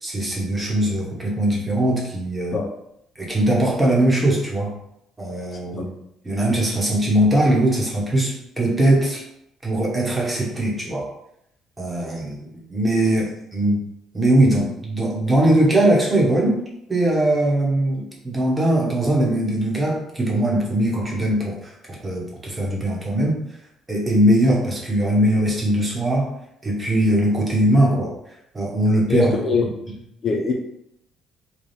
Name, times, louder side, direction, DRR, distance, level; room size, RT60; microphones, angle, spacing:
voice 1, 0.0-2.6 3.2-4.7 5.2-5.9 6.2-9.2 9.6-11.1 11.8-13.8 14.1-16.6 16.9-21.7 22.0-23.4 23.9-26.3 26.6-28.1 28.5-29.3 29.9-30.0, right 1 dB, 15° right, -3 dB, 1.1 m, -20 dB
voice 2, 29.1-29.7 30.2-30.5, left 4 dB, 40° left, 1 dB, 0.5 m, -21 dB
3.4 x 2.3 x 4.2 m, 0.77 s
cardioid pair, 110°, 0 cm